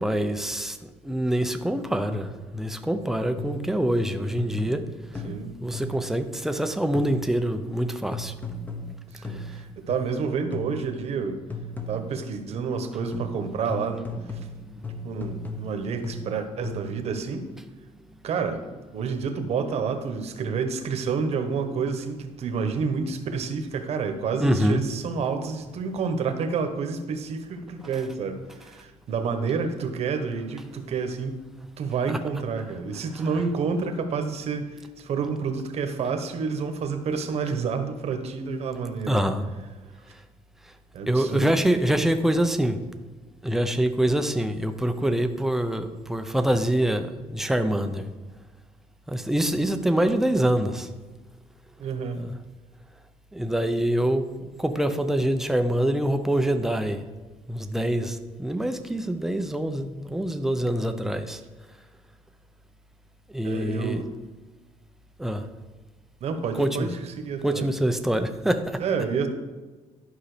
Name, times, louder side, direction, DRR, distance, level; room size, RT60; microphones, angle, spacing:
voice 1, 0.0-4.8 5.6-8.3 9.3-9.6 14.5-14.8 24.4-24.8 27.8-27.9 39.1-39.5 41.1-42.8 43.4-48.1 49.1-50.9 52.2-52.3 53.3-57.0 57.5-61.4 63.3-64.0 65.2-65.5 66.5-66.9 67.4-68.8, right 1 dB, 5° right, 7 dB, 0.6 m, -25 dB
sound 1, 2.1-2.5 3.4-3.8 4.4-6.2 6.9-7.4 8.1-10.2 10.5-11.0 11.5-12.3 13.1-17.1, left 2 dB, 15° left, 1.0 m, -37 dB
voice 2, 9.1-11.4 11.9-14.4 14.7-17.5 18.2-31.4 31.8-39.3 40.9-41.5 51.8-52.2 63.4-64.1 66.2-67.7 68.8-69.3, right 5 dB, 55° right, 7 dB, 1.2 m, -29 dB
11.5 x 5.5 x 5.0 m, 1.3 s
cardioid pair, 130°, 13 cm